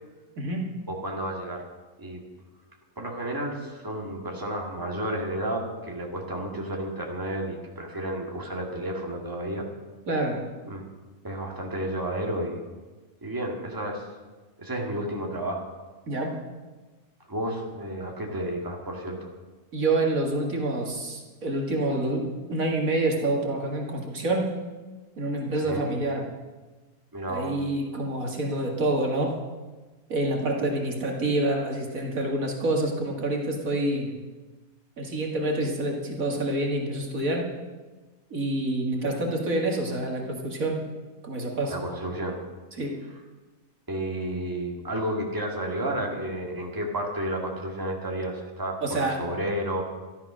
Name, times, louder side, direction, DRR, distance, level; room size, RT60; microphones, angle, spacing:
voice 1, 0.4-0.7 10.1-10.4 16.1-16.4 19.7-24.5 25.2-26.3 27.3-29.4 30.1-34.1 35.0-37.5 38.3-40.8 41.2-41.8 42.8-43.0 48.8-49.2, right 2 dB, 70° right, 1 dB, 2.4 m, -27 dB
voice 2, 0.9-1.6 2.0-2.2 3.0-9.7 10.7-10.8 11.2-12.6 13.2-14.1 14.6-15.6 17.3-19.3 25.6-25.9 27.1-27.6 41.7-42.4 43.9-49.8, right 1 dB, 15° right, 0 dB, 2.1 m, -31 dB
13.5 x 12.5 x 6.3 m, 1.2 s
omnidirectional pair, 1.5 m